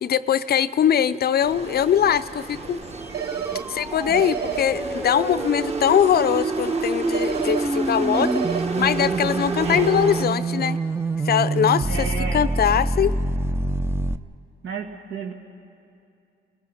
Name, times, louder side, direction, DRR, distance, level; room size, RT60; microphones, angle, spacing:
voice 1, 0.0-2.8 3.7-10.8 11.2-13.1, left 9 dB, 50° left, 15 dB, 0.6 m, -22 dB
sound 1, 1.4-10.2, right 3 dB, 30° right, 1.5 m, -30 dB
sound 2, 3.0-14.2, right 2 dB, 10° right, 0.5 m, -27 dB
sound 3, 3.1-3.6 4.1-4.6 7.1-7.6 8.1-8.6, right 9 dB, 55° right, 0.8 m, -29 dB
voice 2, 11.9-12.4 14.6-15.3, right 6 dB, 75° right, 2 dB, 1.9 m, -32 dB
29.5 x 16.5 x 5.8 m, 2.6 s
cardioid pair, 90°, 20 cm